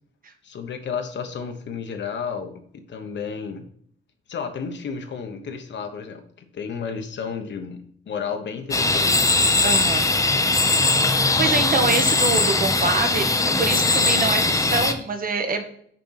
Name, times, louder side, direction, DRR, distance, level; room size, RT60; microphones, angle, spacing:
voice 1, 0.4-2.6 2.9-3.7 4.3-6.2 6.5-9.5 10.2-10.5, left 6 dB, 70° left, 6 dB, 1.2 m, -32 dB
sound 1, 8.7-14.9, left 3 dB, 15° left, 0.7 m, -20 dB
voice 2, 9.6-10.2 11.1-13.3 13.6-15.7, right 3 dB, 45° right, 5 dB, 1.2 m, -25 dB
6.7 x 5.2 x 5.8 m, 0.63 s
wide cardioid pair, 170°, 20 cm